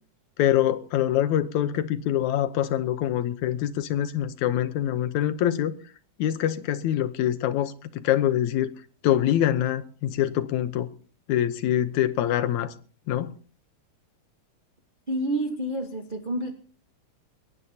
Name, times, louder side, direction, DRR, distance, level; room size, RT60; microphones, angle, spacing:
voice 1, 0.4-5.7 6.2-8.7 9.0-10.9 11.3-12.7 13.1-13.3, left 11 dB, 80° left, 2.3 m, -24 dB
voice 2, 15.1-16.5, right 1 dB, 40° right, 0.7 m, -28 dB
22.0 x 19.5 x 2.8 m
omnidirectional pair, 3.4 m